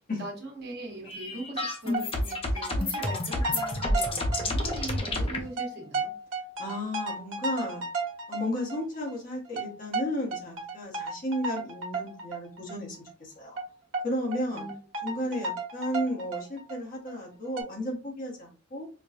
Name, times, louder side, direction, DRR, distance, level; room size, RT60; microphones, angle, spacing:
voice 1, 0.2-6.1 14.5-14.7 15.1-15.4, right 1 dB, 55° right, -1 dB, 1.3 m, -41 dB
sound 1, 1.1-5.4, left 2 dB, 25° left, 0.7 m, -29 dB
sound 2, 1.6-1.7 1.9-2.0 2.3-5.2 5.4-9.2 9.6-12.7 13.1-13.2 13.6-13.7 13.9-14.0 14.3-16.8 17.1-17.2 17.6-17.7, right 3 dB, 80° right, 1.2 m, -34 dB
voice 2, 6.6-7.8 8.3-13.6 14.0-14.7 15.0-18.9, left 1 dB, 40° left, -1 dB, 1.2 m, -33 dB
4.5 x 2.3 x 2.5 m, 0.35 s
head